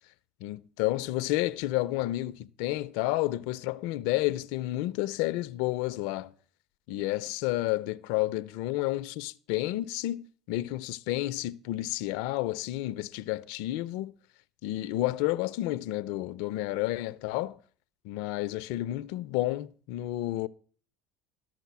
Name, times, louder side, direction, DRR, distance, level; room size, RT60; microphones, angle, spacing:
voice 1, 0.4-6.3 6.9-14.1 14.6-17.6 18.0-20.5, left 17 dB, 75° left, 0.4 m, -31 dB
12.5 x 6.0 x 6.0 m
supercardioid pair, 90°, 0 cm